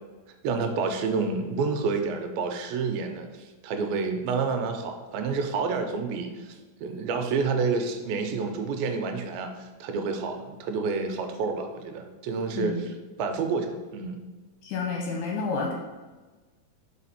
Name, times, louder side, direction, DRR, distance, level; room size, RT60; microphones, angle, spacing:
voice 1, 0.4-12.9 13.2-14.2, right 4 dB, 90° right, 5 dB, 2.5 m, -29 dB
voice 2, 12.6-13.0 14.6-15.7, left 4 dB, 75° left, 1 dB, 2.1 m, -30 dB
4.9 x 4.9 x 5.6 m, 1.3 s
omnidirectional pair, 4.2 m